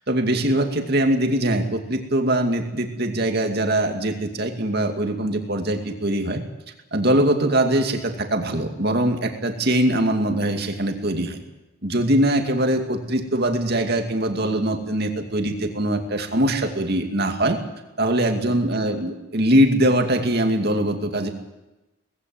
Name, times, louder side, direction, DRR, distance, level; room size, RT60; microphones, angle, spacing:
voice 1, 0.1-6.4 6.9-11.4 11.8-17.6 18.0-21.3, right 1 dB, 50° right, 4 dB, 2.5 m, -22 dB
19.5 x 16.0 x 9.4 m, 1.0 s
head